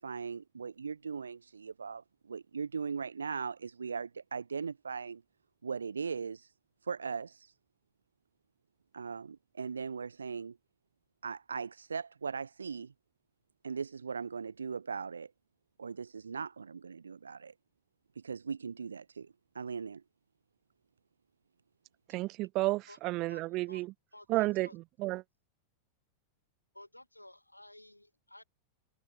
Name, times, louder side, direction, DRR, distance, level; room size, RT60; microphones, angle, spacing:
voice 1, 0.0-5.2 5.6-6.5 6.9-7.5 8.9-10.6 11.2-12.9 13.6-15.3 15.8-17.5 18.2-19.3 19.5-20.0, right 5 dB, 75° right, 1.2 m, -39 dB
voice 2, 22.1-23.9 24.3-25.2, right 20 dB, 40° right, 0.4 m, -32 dB
voice 3, 24.1-24.7 26.7-28.4, left 1 dB, 85° left, 2.4 m, -53 dB
figure-of-eight pair, 90°, 0 cm